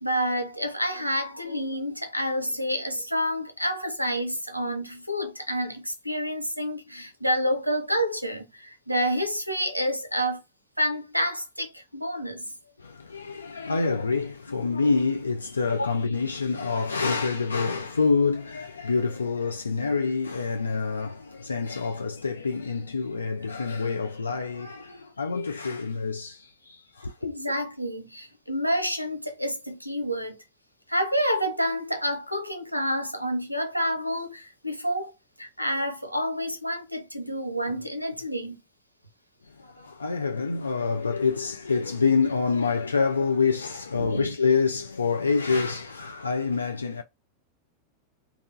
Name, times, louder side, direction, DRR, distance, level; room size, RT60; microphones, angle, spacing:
voice 1, 0.0-10.4 10.8-12.5 15.8-15.9 27.2-30.4 30.9-35.1 35.4-38.6 43.9-44.3, equal, 90° right, 0.5 m, -28 dB
voice 2, 12.8-27.1 39.6-47.0, left 4 dB, 75° left, 0.3 m, -27 dB
2.8 x 2.2 x 3.0 m
figure-of-eight pair, 90°, 0 cm